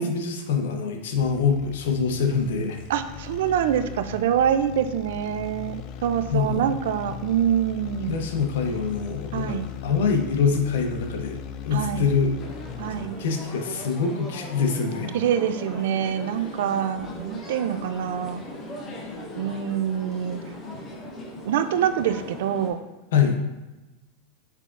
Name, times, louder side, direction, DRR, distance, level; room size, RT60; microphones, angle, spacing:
voice 1, 0.0-2.8 6.3-6.6 8.1-12.3 13.2-15.1 23.1-23.4, left 5 dB, 80° left, 4 dB, 0.7 m, -25 dB
sound 1, 1.1-13.3, left 9 dB, 45° left, 0.3 m, -38 dB
voice 2, 2.9-8.2 9.3-9.7 11.7-12.1 12.8-13.2 15.1-18.4 19.4-20.4 21.4-22.9, right 9 dB, 75° right, 10 dB, 0.3 m, -25 dB
sound 2, 12.4-22.7, left 1 dB, 30° left, 0.8 m, -38 dB
5.7 x 3.5 x 2.5 m, 1.1 s
supercardioid pair, 135°, 0 cm